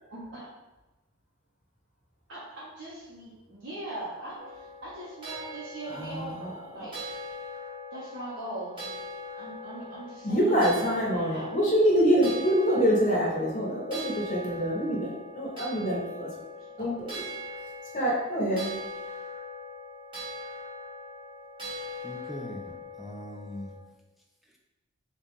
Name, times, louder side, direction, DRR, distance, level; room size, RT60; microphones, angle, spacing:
voice 1, 0.1-0.5 2.3-7.0 7.9-9.0 9.3-10.5 10.8-11.6 16.5-16.9, right 1 dB, 55° right, -10 dB, 0.9 m, -41 dB
sound 1, 4.4-23.8, left 1 dB, 20° right, 1.0 m, -41 dB
voice 2, 5.9-6.9 10.2-16.3 16.8-17.1 17.9-18.7, equal, 35° left, -5 dB, 1.0 m, -26 dB
voice 3, 22.0-23.8 24.4-24.6, equal, ahead, -1 dB, 0.3 m, -41 dB
4.0 x 2.4 x 3.6 m, 1.1 s
head